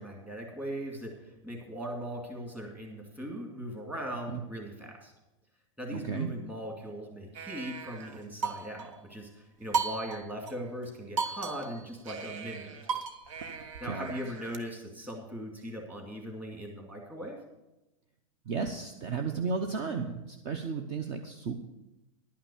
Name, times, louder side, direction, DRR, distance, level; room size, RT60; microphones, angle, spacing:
voice 1, 0.0-5.1 5.8-13.0 13.8-17.4, equal, 10° right, 1 dB, 2.2 m, -39 dB
voice 2, 5.9-6.3 13.9-14.1 18.5-21.5, right 5 dB, 35° right, 6 dB, 0.8 m, -33 dB
sound 1, 7.3-9.0 9.7-10.5 10.8-10.9 11.2-14.6, right 5 dB, 70° right, 1.3 m, -36 dB
11.0 x 5.8 x 8.4 m, 0.98 s
supercardioid pair, 155°, 17 cm